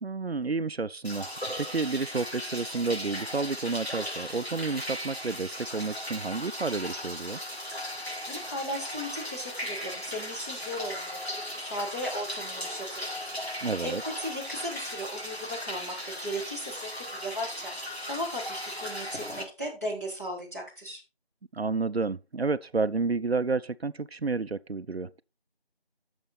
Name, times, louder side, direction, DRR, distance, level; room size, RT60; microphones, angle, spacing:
voice 1, 0.0-7.4 13.6-14.0 21.5-25.2, right 4 dB, 75° right, 0.7 m, -30 dB
sound 1, 1.0-19.4, left 1 dB, 85° left, 4.4 m, -37 dB
voice 2, 8.0-13.1 13.4-13.9 14.2-16.0 16.2-17.7 18.1-21.0, equal, 15° left, 2.3 m, -37 dB
10.0 x 6.9 x 4.0 m
figure-of-eight pair, 175°, 31 cm